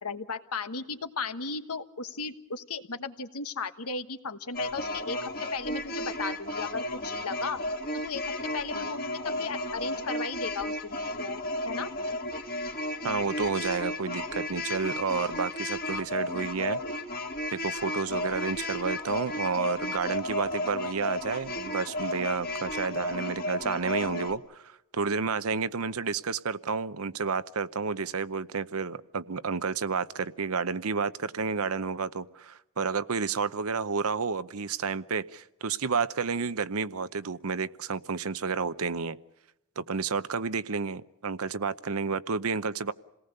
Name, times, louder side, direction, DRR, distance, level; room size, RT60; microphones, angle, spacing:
voice 1, 0.0-5.2 5.5-7.6 7.9-11.9, left 4 dB, 85° left, 9 dB, 1.3 m, -36 dB
sound 1, 4.5-24.4, left 1 dB, 45° left, 1.9 m, -33 dB
voice 2, 13.0-16.8 17.5-39.2 39.8-42.9, right 5 dB, 75° right, 14 dB, 0.8 m, -31 dB
27.5 x 18.5 x 6.7 m, 0.93 s
head